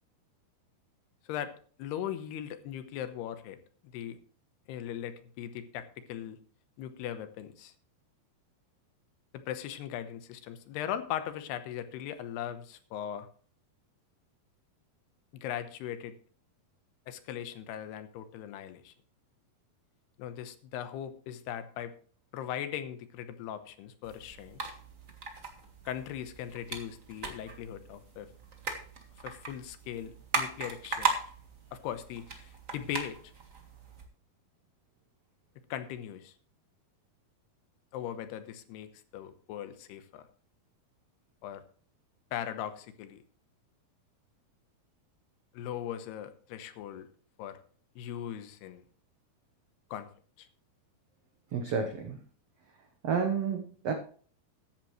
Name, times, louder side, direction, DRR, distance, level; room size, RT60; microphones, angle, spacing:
voice 1, 1.8-3.6 3.9-4.2 4.7-6.4 6.8-7.7 9.5-13.3 15.3-16.2 17.1-18.9 20.2-21.9 22.3-24.6 25.9-28.3 29.2-31.2 31.7-33.3 35.7-36.3 37.9-40.3 41.4-41.6 42.3-43.2 45.5-47.1 47.4-47.6 48.0-48.8 49.9-50.1 50.4-50.5, left 10 dB, 90° left, 10 dB, 3.1 m, -39 dB
sound 1, 24.0-34.0, right 4 dB, 60° right, 0.8 m, -38 dB
voice 2, 51.5-52.2 53.0-53.9, right 6 dB, 80° right, 5 dB, 1.4 m, -30 dB
14.5 x 10.5 x 3.1 m, 0.43 s
omnidirectional pair, 4.6 m